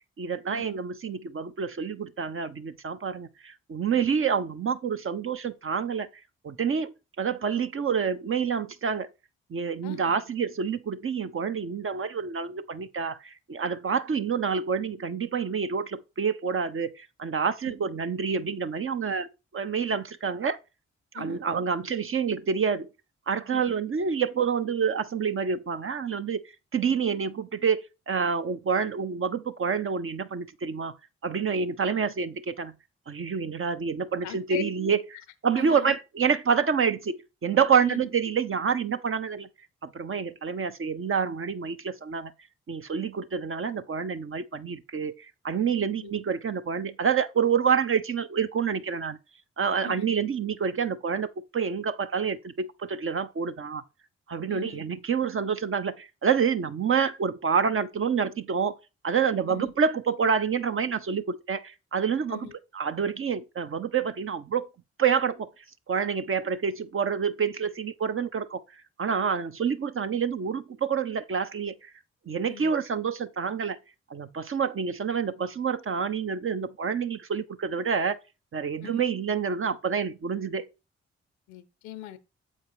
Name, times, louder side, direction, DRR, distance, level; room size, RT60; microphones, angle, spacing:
voice 1, 0.2-6.1 6.4-6.9 7.2-9.1 9.5-20.6 21.1-22.9 23.3-26.4 26.7-27.8 28.1-31.0 31.2-32.8 33.1-35.0 35.4-39.5 39.8-42.3 42.7-49.2 49.6-53.8 54.3-58.7 59.0-62.5 62.7-64.6 65.0-65.5 65.9-68.6 69.0-71.9 72.3-73.8 74.1-78.1 78.5-80.7, right 6 dB, 45° right, 0.9 m, -28 dB
voice 2, 9.8-10.2 17.6-17.8 21.1-21.4 23.5-23.6 34.2-34.6 35.5-35.9 37.9-38.1 46.0-46.1 49.8-50.1 54.5-54.8 59.5-59.7 62.3-62.5 72.4-72.7 78.8-79.0 81.5-82.2, left 15 dB, 90° left, 0.7 m, -41 dB
7.5 x 4.6 x 4.7 m
hypercardioid pair, 40°, 29 cm